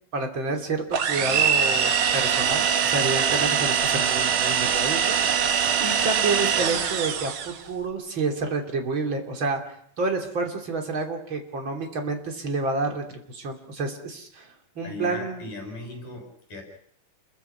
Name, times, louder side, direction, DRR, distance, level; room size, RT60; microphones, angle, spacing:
voice 1, 0.1-5.0 5.3-9.6 10.0-14.5 14.7-15.5, right 3 dB, 35° right, 3 dB, 3.6 m, -29 dB
sound 1, 0.9-7.6, right 8 dB, 60° right, 2.4 m, -23 dB
voice 2, 14.8-16.6, left 3 dB, 70° left, 3 dB, 8.6 m, -37 dB
29.0 x 22.5 x 5.9 m, 0.64 s
omnidirectional pair, 3.8 m